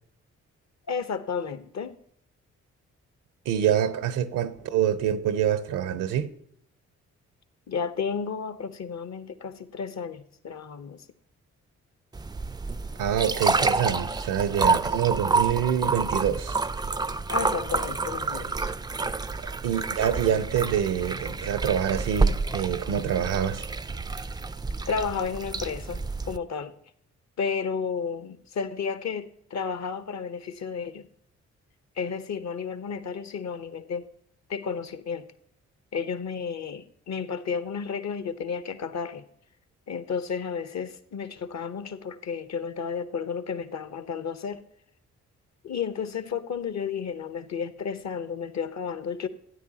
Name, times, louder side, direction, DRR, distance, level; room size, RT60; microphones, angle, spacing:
voice 1, 0.9-1.9 7.7-11.0 17.3-18.7 24.9-26.7 27.4-31.1 32.0-34.1 34.5-35.3 35.9-39.2 39.9-44.6 45.6-49.3, left 6 dB, 55° left, 0.9 m, -32 dB
voice 2, 3.5-6.3 13.0-16.6 19.6-23.7, right 9 dB, 85° right, 0.7 m, -26 dB
sound 1, 12.1-26.4, right 3 dB, 15° right, 0.4 m, -28 dB
13.0 x 9.4 x 2.8 m
supercardioid pair, 50°, 31 cm